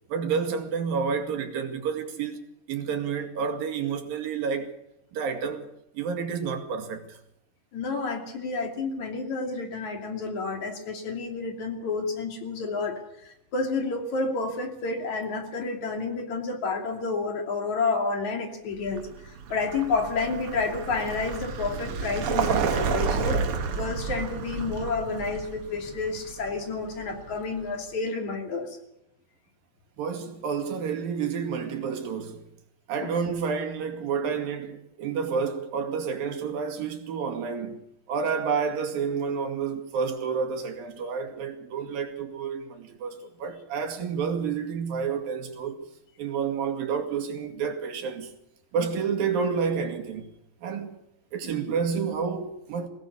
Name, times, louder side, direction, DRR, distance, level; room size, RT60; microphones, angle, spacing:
voice 1, 0.1-2.4 2.7-4.7 5.1-5.7 5.9-7.2 30.0-32.4 32.9-37.8 38.1-45.8 46.2-48.3 48.7-50.3 50.6-51.0 51.3-52.9, right 6 dB, 90° right, 4.0 m, -29 dB
voice 2, 7.7-23.4 23.7-28.8 33.0-33.2 51.4-51.5, left 4 dB, 55° left, 4.1 m, -30 dB
Vehicle, 18.9-27.7, right 5 dB, 55° right, 1.8 m, -31 dB
22.5 x 18.0 x 6.8 m
omnidirectional pair, 3.9 m